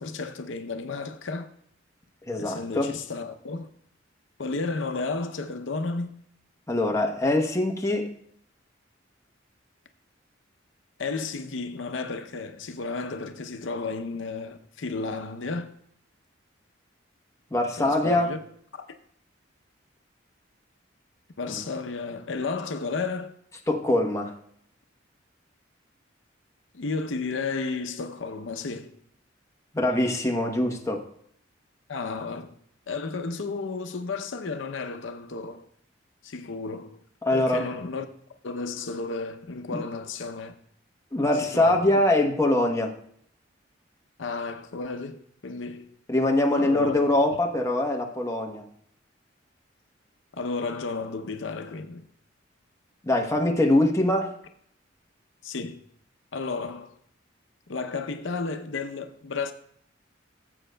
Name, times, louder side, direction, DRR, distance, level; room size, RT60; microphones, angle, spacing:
voice 1, 0.0-1.5 2.4-3.7 4.4-6.1 11.0-15.7 17.8-18.4 18.7-18.9 21.4-23.3 26.7-29.0 31.9-32.6 32.9-35.7 36.2-37.0 37.3-38.1 38.4-40.6 41.4-42.0 44.2-45.9 46.6-47.0 50.4-52.0 55.4-55.8 56.3-57.0 57.7-59.5, left 4 dB, 75° left, 0.6 m, -33 dB
voice 2, 2.3-2.9 6.7-8.1 17.5-18.3 21.5-21.6 23.7-24.3 29.7-31.0 37.2-37.7 39.7-39.8 41.1-42.9 46.1-48.7 53.0-54.3, left 1 dB, 15° left, 0.9 m, -23 dB
18.0 x 7.8 x 2.2 m
head